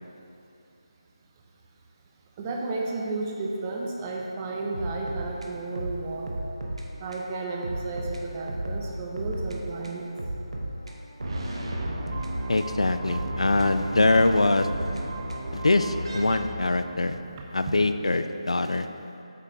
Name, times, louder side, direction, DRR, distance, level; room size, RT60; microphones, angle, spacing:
voice 1, 2.4-6.3 7.0-10.0, right 3 dB, 25° right, -1 dB, 0.8 m, -32 dB
sound 1, 4.7-6.9 7.1-7.3 7.6-9.6 9.8-12.7 13.1-15.6, right 1 dB, 75° right, 1.1 m, -34 dB
sound 2, 11.2-17.3, right 1 dB, 55° right, 1.1 m, -35 dB
voice 2, 12.5-14.7 15.5-17.2 17.5-18.9, left 2 dB, 75° left, 9 dB, 0.4 m, -23 dB
8.5 x 6.7 x 3.6 m, 2.7 s
figure-of-eight pair, 155°, 3 cm